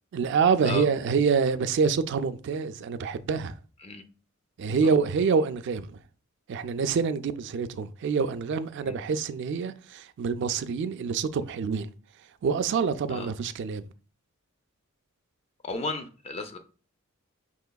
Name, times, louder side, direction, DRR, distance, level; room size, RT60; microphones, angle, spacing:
voice 1, 0.1-3.6 4.6-6.0 6.5-11.9 12.4-13.9, right 5 dB, 55° right, 0.3 m, -26 dB
voice 2, 15.6-16.6, left 3 dB, 30° left, 0.4 m, -34 dB
5.7 x 2.9 x 2.2 m
head